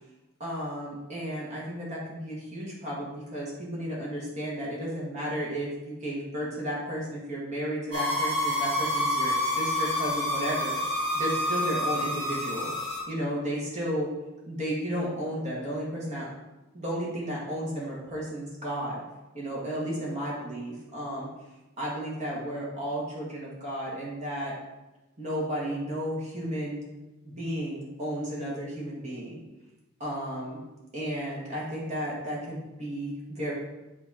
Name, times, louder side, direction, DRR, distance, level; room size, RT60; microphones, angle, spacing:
voice 1, 0.4-10.8 11.1-12.7 13.1-14.1 14.5-16.3 16.7-19.0 19.3-21.3 21.8-24.5 25.2-26.8 27.2-29.4 30.0-30.6 30.9-33.5, equal, 30° right, -5 dB, 1.7 m, -33 dB
sound 1, 7.9-13.0, left 1 dB, 55° right, 2.1 m, -28 dB
8.4 x 2.9 x 4.8 m, 1.1 s
head